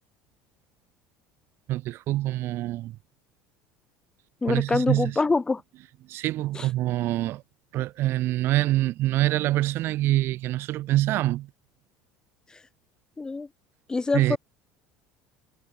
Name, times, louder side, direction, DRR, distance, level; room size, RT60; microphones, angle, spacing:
voice 1, 1.7-3.0 4.5-5.2 6.1-7.4 7.7-11.5 14.1-14.4, right 15 dB, 55° right, 0.5 m, -25 dB
voice 2, 4.4-5.6 6.5-6.7 12.5-12.6 13.2-13.5 13.9-14.4, left 3 dB, 15° left, 1.1 m, -25 dB
supercardioid pair, 115°, 5 cm